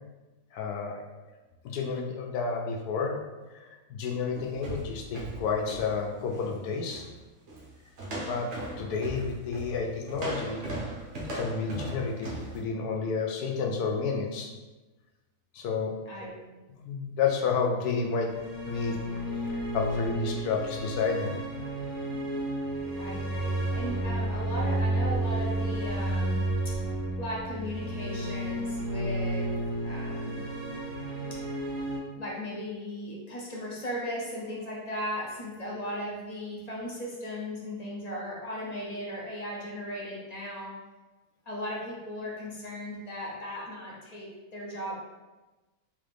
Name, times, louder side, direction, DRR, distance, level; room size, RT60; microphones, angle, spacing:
voice 1, 0.5-1.0 1.6-3.2 3.5-7.1 8.2-8.5 8.8-10.6 11.3-14.5 15.5-15.9 16.8-19.0 19.3-21.4, left 5 dB, 85° left, 2 dB, 1.1 m, -31 dB
sound 1, 4.3-6.5 6.9-7.1 7.5-7.7 8.0-12.6, right 1 dB, 60° right, 0.9 m, -38 dB
voice 2, 16.1-16.6 23.0-26.9 27.2-29.6 29.8-30.5 31.3-31.4 32.1-40.8 41.5-44.9, equal, 50° left, -5 dB, 0.5 m, -37 dB
sound 2, 18.2-32.0, right 1 dB, 85° right, 1.4 m, -31 dB
3.7 x 2.5 x 3.3 m, 1.2 s
omnidirectional pair, 1.6 m